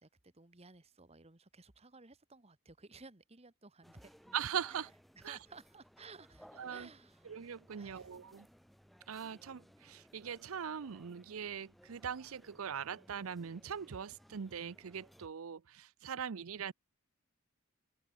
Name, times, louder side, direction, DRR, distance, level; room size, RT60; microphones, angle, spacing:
voice 1, 0.0-4.3 4.7-4.9 5.2-7.3 7.7-8.1, right 3 dB, 30° right, 1.6 m, -57 dB
sound 1, 3.8-15.3, equal, ahead, 3.5 m, -62 dB
voice 2, 4.3-4.9 5.2-5.4 6.6-6.9 7.2-8.5 9.1-16.7, right 7 dB, 85° right, 0.6 m, -41 dB
open air
head